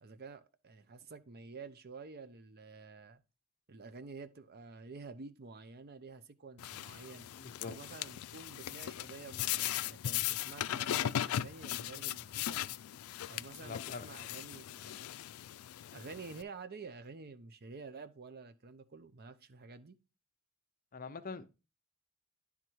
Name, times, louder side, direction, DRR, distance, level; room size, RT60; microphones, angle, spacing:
voice 1, 0.0-3.2 3.7-7.3 7.6-12.6 13.3-15.1 15.9-20.0, right 4 dB, 50° right, 0.7 m, -50 dB
sound 1, 6.6-16.4, left 12 dB, 90° left, 0.3 m, -38 dB
voice 2, 7.4-7.7 13.6-14.0 20.9-21.5, left 4 dB, 40° left, 0.6 m, -43 dB
10.5 x 3.7 x 4.5 m
head